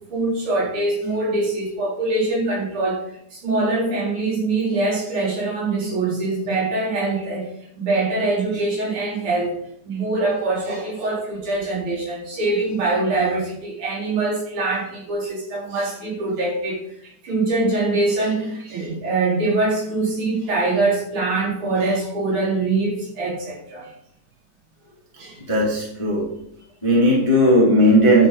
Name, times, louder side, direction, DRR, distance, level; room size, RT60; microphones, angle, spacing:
voice 1, 0.1-3.0 3.3-7.5 7.8-9.6 9.8-16.8 17.2-23.9 25.2-25.4, right 2 dB, 45° right, -6 dB, 5.0 m, -23 dB
voice 2, 25.5-26.3 26.8-28.3, equal, 10° left, -5 dB, 1.9 m, -16 dB
11.0 x 5.9 x 5.1 m, 0.72 s
omnidirectional pair, 5.0 m